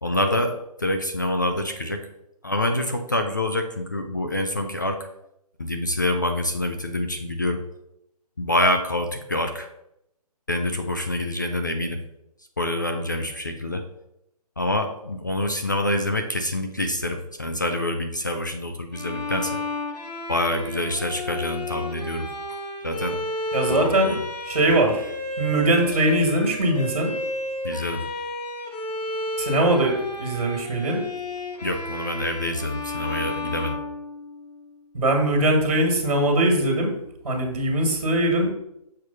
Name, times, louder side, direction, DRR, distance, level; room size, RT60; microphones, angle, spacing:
voice 1, 0.0-2.0 2.4-5.1 5.6-7.6 8.4-9.7 10.5-12.0 12.6-13.8 14.6-19.6 20.3-22.3 22.8-23.2 23.7-24.2 27.6-28.0 31.6-33.8, left 1 dB, 30° left, 5 dB, 0.4 m, -26 dB
Bowed string instrument, 18.9-34.7, left 1 dB, 85° left, 1.8 m, -32 dB
voice 2, 23.5-24.2 24.4-25.0 25.4-27.1 29.4-31.0 34.9-36.9 37.2-38.5, right 1 dB, 65° right, 0 dB, 1.7 m, -21 dB
6.5 x 3.2 x 5.3 m, 0.81 s
hypercardioid pair, 175°, 20 cm